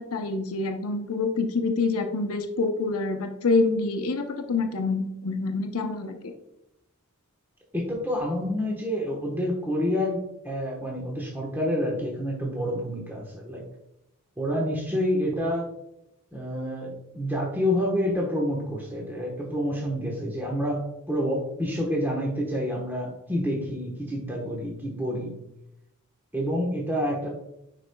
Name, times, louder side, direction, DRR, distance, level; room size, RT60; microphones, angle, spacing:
voice 1, 0.0-6.3, left 3 dB, 70° left, 6 dB, 0.7 m, -26 dB
voice 2, 7.7-10.2 10.4-13.6 14.4-15.7 16.3-25.3 26.3-27.3, equal, 10° right, -3 dB, 1.1 m, -28 dB
9.8 x 4.9 x 2.2 m, 0.83 s
head